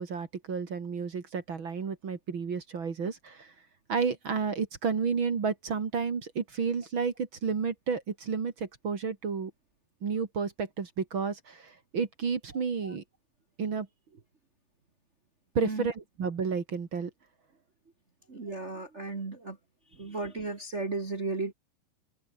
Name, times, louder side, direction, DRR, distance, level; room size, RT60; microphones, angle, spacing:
voice 1, 0.0-3.5 3.9-9.5 10.0-13.0 13.6-13.9 15.5-17.1, right 5 dB, 40° right, 2.1 m, -31 dB
voice 2, 12.5-12.9 15.6-15.9 18.3-19.6 20.0-21.5, right 3 dB, 60° right, 0.7 m, -35 dB
omnidirectional pair, 4.7 m